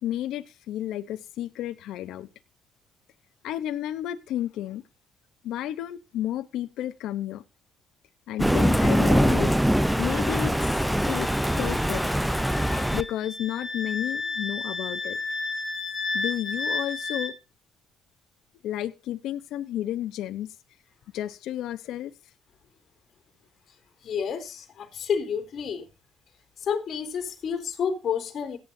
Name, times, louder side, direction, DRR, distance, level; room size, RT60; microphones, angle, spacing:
voice 1, 0.0-2.3 3.4-4.8 5.4-7.4 8.3-9.6 10.0-10.5 11.1-11.3 11.6-12.0 12.9-15.2 16.1-17.4 18.6-20.5 21.1-22.1, left 12 dB, 90° left, 0.9 m, -32 dB
Thunder, 8.4-13.0, equal, ahead, 0.7 m, -23 dB
Wind instrument woodwind instrument, 10.1-17.3, left 3 dB, 20° left, 5.4 m, -33 dB
voice 2, 24.0-25.9 26.6-28.6, left 7 dB, 60° left, 3.9 m, -30 dB
17.5 x 9.4 x 2.8 m
cardioid pair, 90°, 0 cm